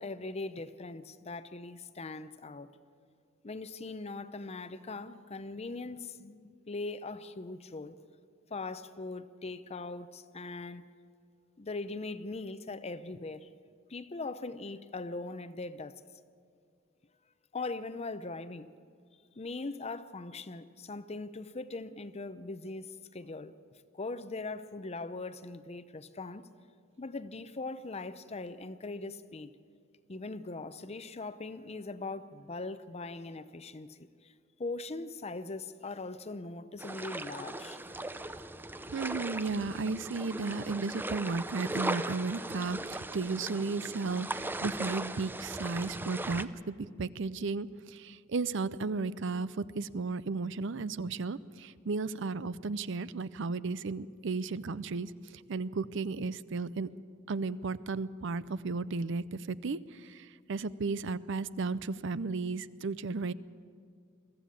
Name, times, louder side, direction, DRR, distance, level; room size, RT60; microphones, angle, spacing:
voice 1, 0.0-2.7 3.4-7.9 8.5-10.9 11.6-13.5 13.9-15.9 17.5-18.7 19.4-23.5 23.9-26.5 27.0-29.5 30.1-34.3 34.6-37.8, left 3 dB, 30° left, 13 dB, 0.7 m, -40 dB
sound 1, 36.8-46.5, right 2 dB, 10° right, 0.5 m, -38 dB
voice 2, 38.9-56.9 57.3-63.3, right 4 dB, 65° right, 17 dB, 0.6 m, -34 dB
22.5 x 14.5 x 8.6 m, 2.1 s
head